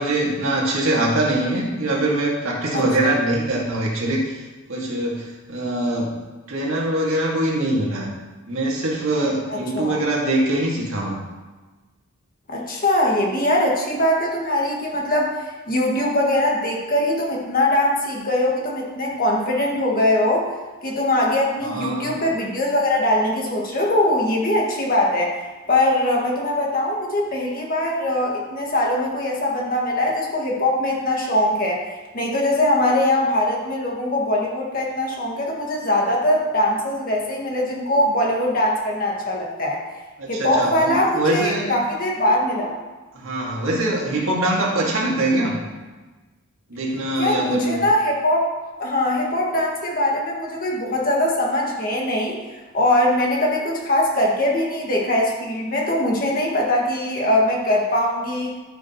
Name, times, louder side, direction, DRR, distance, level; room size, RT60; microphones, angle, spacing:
voice 1, 0.0-4.4 4.7-6.2 6.5-8.1 8.5-11.2 21.6-22.2 40.2-41.7 43.1-45.6 46.7-47.9, right 1 dB, 65° right, -3 dB, 1.9 m, -23 dB
voice 2, 9.5-10.0 12.5-20.5 20.8-25.3 25.7-31.8 32.1-39.8 40.3-42.7 47.2-48.4 48.8-52.4 52.7-58.5, left 1 dB, 40° left, -2 dB, 1.7 m, -21 dB
13.5 x 6.1 x 3.0 m, 1.3 s
head